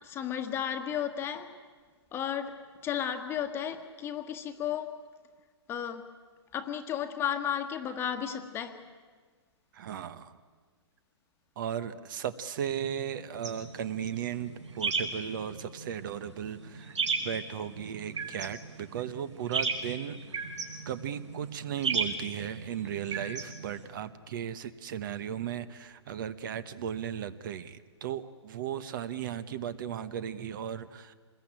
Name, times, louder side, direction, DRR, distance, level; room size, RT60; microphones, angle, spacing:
voice 1, 0.0-1.5 2.1-5.0 5.7-6.1 6.5-8.8, left 9 dB, 15° left, 6 dB, 1.4 m, -33 dB
voice 2, 9.7-10.4 11.6-16.9 17.2-20.4 20.8-31.1, right 9 dB, 45° right, 14 dB, 1.1 m, -36 dB
sound 1, 13.4-23.9, right 4 dB, 90° right, 5.2 m, -36 dB
27.0 x 21.0 x 9.0 m, 1.5 s
hypercardioid pair, 150°, 15 cm